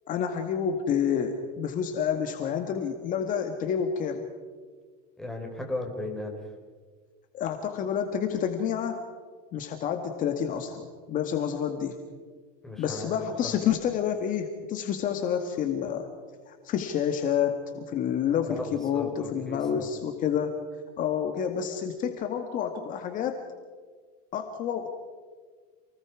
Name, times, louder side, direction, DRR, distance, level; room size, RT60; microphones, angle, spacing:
voice 1, 0.1-4.2 7.3-9.0 9.5-12.0 12.8-16.1 16.5-20.6 21.0-23.4 24.3-24.9, left 8 dB, 45° left, 5 dB, 1.8 m, -29 dB
voice 2, 5.2-6.4 12.6-13.6 18.4-19.9, left 2 dB, ahead, 1 dB, 4.4 m, -36 dB
28.5 x 19.5 x 4.8 m, 1.5 s
supercardioid pair, 130°, 20 cm